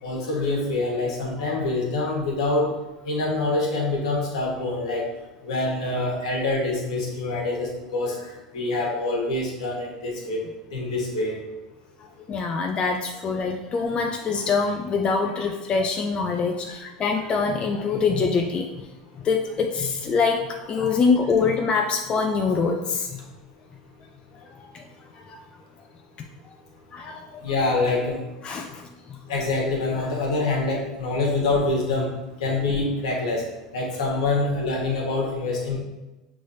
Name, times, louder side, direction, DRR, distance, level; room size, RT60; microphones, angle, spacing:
voice 1, 0.0-2.7 3.0-5.1 5.4-10.4 10.7-11.4 16.7-16.8 27.4-28.2 29.3-32.1 32.4-33.4 33.7-35.8, left 2 dB, 80° left, -2 dB, 1.3 m, -25 dB
voice 2, 12.3-18.7 19.2-23.2 24.7-24.8 25.3-25.4 26.9-27.4 28.4-29.2, left 4 dB, 35° left, 2 dB, 0.5 m, -24 dB
6.0 x 3.2 x 2.7 m, 1.1 s
hypercardioid pair, 90°, 3 cm